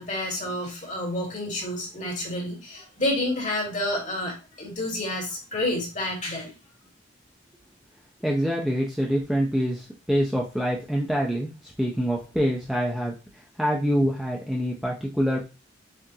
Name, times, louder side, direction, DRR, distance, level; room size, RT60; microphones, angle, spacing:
voice 1, 0.0-6.5, left 1 dB, 40° left, -2 dB, 1.8 m, -29 dB
voice 2, 8.2-13.1 13.6-15.4, equal, ahead, -2 dB, 0.5 m, -25 dB
7.3 x 2.5 x 2.7 m, 0.30 s
head